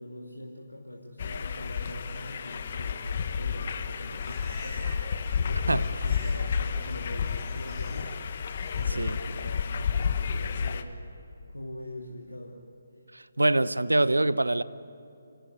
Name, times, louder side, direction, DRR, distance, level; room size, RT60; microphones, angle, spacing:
voice 1, 0.0-8.1 8.7-10.9 11.5-12.6, left 1 dB, 85° left, 2.7 m, -43 dB
sound 1, 1.2-10.8, left 6 dB, 45° left, 1.3 m, -31 dB
Livestock farm animals working animals, 3.9-5.1 5.4-6.4 6.7-8.0 8.5-8.9, left 1 dB, 15° left, 8.0 m, -49 dB
voice 2, 13.1-14.6, right 2 dB, 80° right, 0.8 m, -24 dB
28.0 x 18.0 x 9.3 m
figure-of-eight pair, 145°, 0 cm